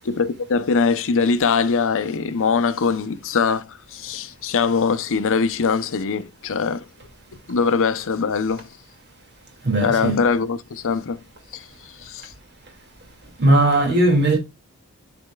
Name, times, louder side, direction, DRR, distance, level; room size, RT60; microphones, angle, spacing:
voice 1, 0.1-6.8 7.5-8.7 9.8-11.2 11.5-11.6 12.0-12.3, left 5 dB, 60° left, 0.6 m, -22 dB
voice 2, 9.6-10.2 13.4-14.4, right 1 dB, 50° right, 2.3 m, -17 dB
12.0 x 4.3 x 2.3 m
head